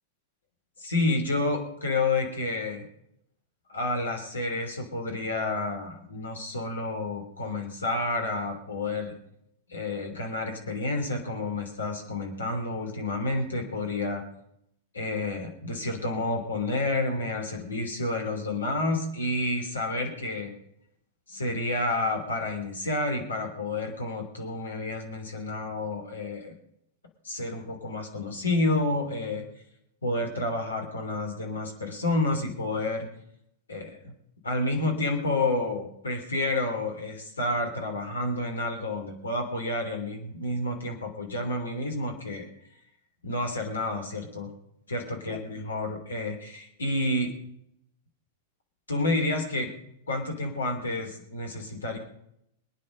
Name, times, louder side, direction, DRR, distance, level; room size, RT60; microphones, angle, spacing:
voice 1, 0.8-2.8 3.7-9.1 9.7-14.2 14.9-20.5 21.3-26.5 27.2-29.4 30.0-33.1 33.7-34.1 34.4-42.5 43.2-44.5 44.9-47.3 48.9-49.7 50.1-52.0, left 2 dB, 75° left, 3 dB, 3.3 m, -30 dB
24.0 x 9.9 x 5.2 m, 0.76 s
figure-of-eight pair, 95°, 0 cm